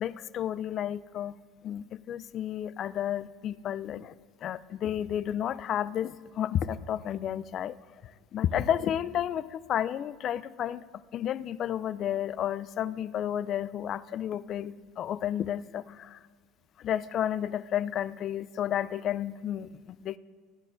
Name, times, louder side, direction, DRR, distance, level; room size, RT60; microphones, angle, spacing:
voice 1, 0.0-1.4 1.6-4.1 4.4-7.7 8.3-10.8 11.1-16.2 16.8-20.2, left 10 dB, 40° left, 17 dB, 0.3 m, -31 dB
15.5 x 10.0 x 2.5 m, 1.5 s
supercardioid pair, 130°, 0 cm